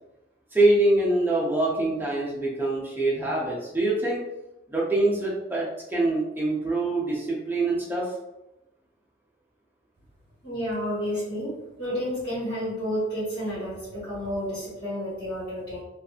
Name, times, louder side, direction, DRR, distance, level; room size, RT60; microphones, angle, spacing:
voice 1, 0.5-4.2 4.7-8.1, right 2 dB, 10° right, -6 dB, 0.6 m, -24 dB
voice 2, 10.4-11.5 11.8-15.8, equal, 55° left, -12 dB, 1.4 m, -30 dB
2.6 x 2.4 x 2.4 m, 0.91 s
head